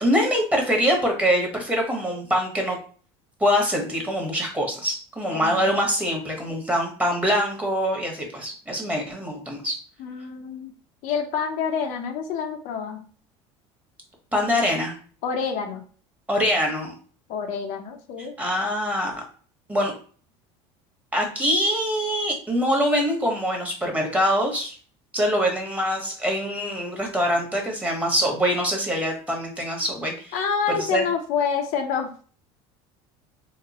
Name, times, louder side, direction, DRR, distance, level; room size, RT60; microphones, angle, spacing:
voice 1, 0.0-2.8 3.4-9.8 14.3-15.0 16.3-16.9 18.2-19.2 19.7-19.9 21.1-24.8 25.1-30.4 30.7-31.0, equal, 10° right, 1 dB, 1.1 m, -24 dB
voice 2, 5.3-5.8 10.0-10.7 11.0-13.1 15.2-15.8 17.3-18.4 30.3-32.2, left 6 dB, 65° left, 4 dB, 0.6 m, -27 dB
3.0 x 2.1 x 4.0 m, 0.42 s
supercardioid pair, 110°, 14 cm